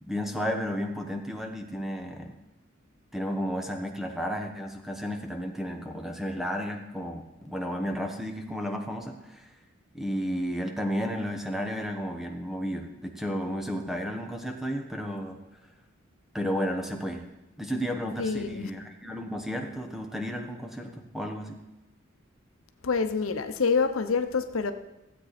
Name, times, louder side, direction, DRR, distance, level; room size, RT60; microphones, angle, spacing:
voice 1, 0.0-2.4 3.1-9.4 9.9-15.4 16.3-17.2 17.6-21.6, equal, ahead, 3 dB, 1.1 m, -33 dB
voice 2, 18.2-18.7 22.8-24.7, left 5 dB, 85° left, 8 dB, 0.8 m, -26 dB
15.5 x 8.3 x 4.2 m, 1.0 s
head